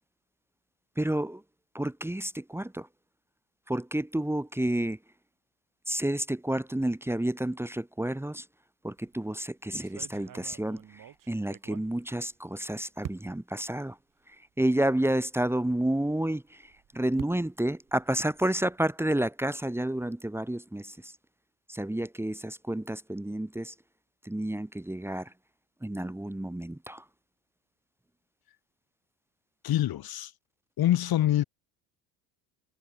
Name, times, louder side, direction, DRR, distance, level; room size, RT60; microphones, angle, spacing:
voice 1, 1.0-1.4 1.7-2.9 3.7-5.0 5.9-8.5 8.8-14.0 14.3-21.1 21.7-23.7 24.2-25.3 25.8-27.0, right 1 dB, 5° right, 2.6 m, -30 dB
sound 1, 9.0-9.3 9.8-12.6 13.0-13.6 14.3-14.4 14.7-14.8 16.5-18.8, right 10 dB, 45° right, 3.1 m, -46 dB
voice 2, 29.6-30.3 30.8-31.4, left 13 dB, 50° left, 3.8 m, -25 dB
hypercardioid pair, 85°, 46 cm